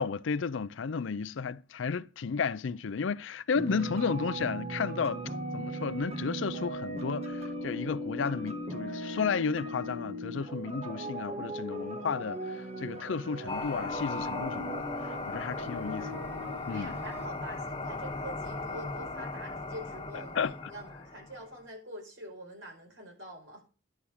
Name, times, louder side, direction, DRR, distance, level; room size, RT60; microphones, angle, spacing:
voice 1, 0.0-16.3 16.7-17.0 20.3-20.7, left 5 dB, 70° left, 0.5 m, -33 dB
sound 1, 3.6-17.3, right 1 dB, 35° right, 1.3 m, -38 dB
sound 2, 13.5-21.4, left 3 dB, 25° left, 1.6 m, -38 dB
voice 2, 16.7-23.6, right 1 dB, 70° right, 5.1 m, -45 dB
11.5 x 6.9 x 6.3 m
head